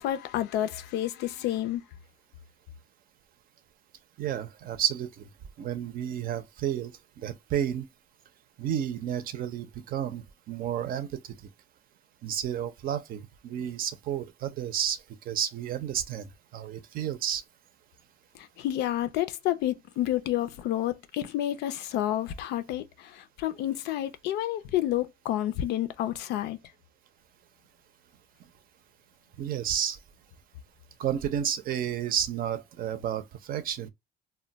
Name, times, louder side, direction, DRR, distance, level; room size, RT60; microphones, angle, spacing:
voice 1, 0.0-1.8 18.3-26.6, left 13 dB, 85° left, 0.5 m, -30 dB
voice 2, 4.2-5.3 5.6-7.9 8.6-11.1 12.2-15.0 15.3-17.4 29.4-30.0 31.0-33.9, right 10 dB, 60° right, 0.5 m, -31 dB
2.2 x 2.1 x 3.8 m
cardioid pair, 110°, 17 cm